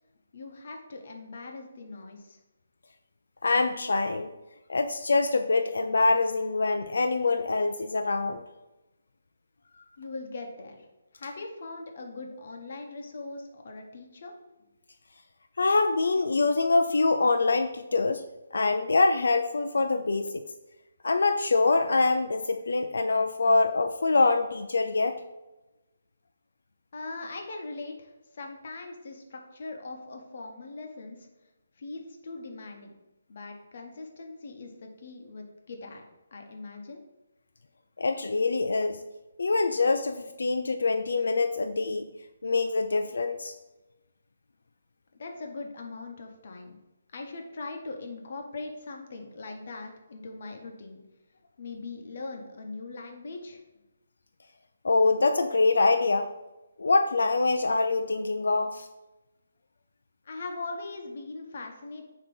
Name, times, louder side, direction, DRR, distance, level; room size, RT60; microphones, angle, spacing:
voice 1, 0.3-2.4 10.0-10.9 11.1-14.3 14.6-14.7 26.9-31.3 31.8-32.9 33.3-36.0 36.3-37.0 45.2-46.8 47.1-51.0 51.6-53.6 60.2-62.1, left 3 dB, 35° left, 2 dB, 0.9 m, -40 dB
voice 2, 3.4-4.3 4.7-8.4 15.6-18.2 18.5-20.4 21.0-25.2 38.0-39.0 39.4-42.1 42.4-43.5 54.8-56.3 56.8-58.9, left 3 dB, 75° left, 7 dB, 0.4 m, -24 dB
6.8 x 2.9 x 5.2 m, 1.0 s
hypercardioid pair, 180°, 0 cm